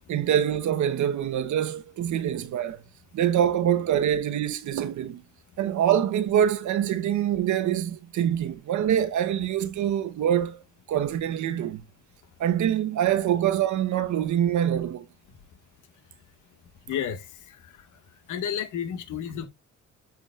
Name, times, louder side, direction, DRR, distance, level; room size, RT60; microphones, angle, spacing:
voice 1, 0.1-2.8 3.1-5.2 5.6-10.6 10.9-11.8 12.4-15.1, right 10 dB, 75° right, 1.1 m, -25 dB
voice 2, 16.9-17.6 18.3-19.5, left 9 dB, 85° left, 1.8 m, -31 dB
10.5 x 5.0 x 2.5 m
cardioid pair, 90°, 30 cm